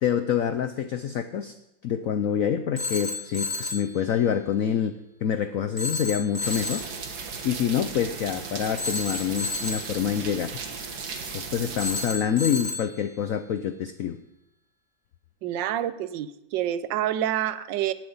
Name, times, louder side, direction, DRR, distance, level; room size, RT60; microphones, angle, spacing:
voice 1, 0.0-1.5 1.8-4.9 5.2-6.8 7.2-10.5 11.0-14.2, left 8 dB, 75° left, 10 dB, 0.7 m, -26 dB
Telephone, 2.8-3.9 5.8-6.9 8.8-9.9 11.8-12.9, left 2 dB, 20° left, 0.5 m, -31 dB
sound 1, 6.4-12.1, right 5 dB, 55° right, 1.8 m, -36 dB
voice 2, 15.4-17.9, right 11 dB, 75° right, 14 dB, 1.3 m, -27 dB
18.5 x 7.8 x 5.5 m, 0.88 s
omnidirectional pair, 2.1 m